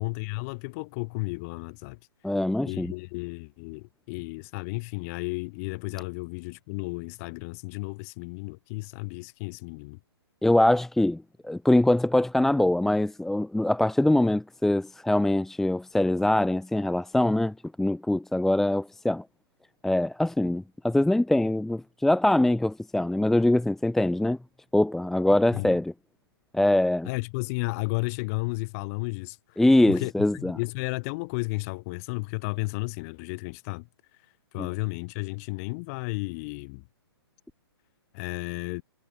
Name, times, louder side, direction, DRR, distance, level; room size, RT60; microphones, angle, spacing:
voice 1, 0.0-2.0 2.6-10.0 25.5-25.8 27.0-29.4 29.9-33.9 34.5-36.8 38.1-38.8, left 28 dB, 35° left, 7.4 m, -33 dB
voice 2, 2.2-2.9 10.4-19.2 19.8-24.4 24.7-25.9 26.5-27.1 29.6-30.6 34.6-34.7, left 1 dB, ahead, 0.8 m, -23 dB
figure-of-eight pair, 125°, 13 cm